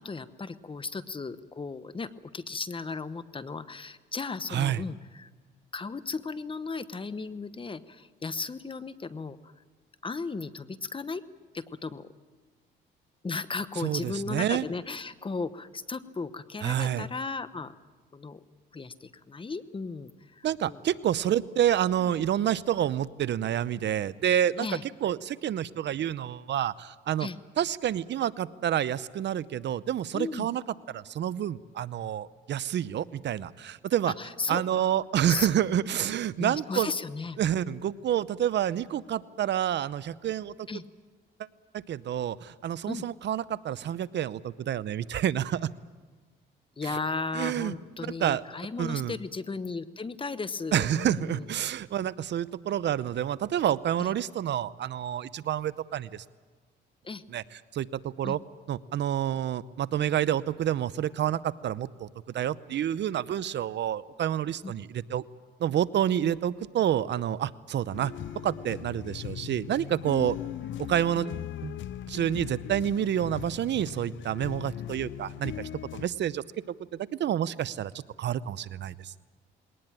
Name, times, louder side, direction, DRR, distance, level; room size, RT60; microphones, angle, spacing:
voice 1, 0.0-5.3 5.7-9.4 10.0-11.2 11.5-12.1 13.2-17.7 18.1-18.4 18.7-20.8 22.0-22.1 24.6-24.8 27.2-27.4 30.1-30.5 34.2-34.9 35.3-35.5 36.4-37.4 40.7-40.8 42.9-43.0 46.8-51.5 54.0-54.1 57.0-57.2 58.2-58.4 64.6-64.7 71.1-71.3, left 4 dB, 25° left, 13 dB, 1.0 m, -35 dB
voice 2, 4.5-4.8 13.8-14.7 16.6-17.1 20.4-24.7 25.0-27.3 27.6-30.6 30.9-34.1 34.5-36.9 37.4-40.5 41.7-45.7 46.9-47.0 47.3-47.7 48.2-48.4 48.8-49.1 50.7-56.2 57.3-57.4 57.7-58.4 58.7-62.1 62.3-65.2 65.6-68.1 68.4-70.4 70.8-71.3 71.6-71.8 72.1-77.9 78.2-79.1, right 10 dB, 60° right, 17 dB, 0.7 m, -28 dB
sound 1, 67.9-76.1, left 11 dB, 75° left, 0.7 m, -39 dB
21.0 x 19.0 x 9.0 m, 1.4 s
cardioid pair, 90°, 20 cm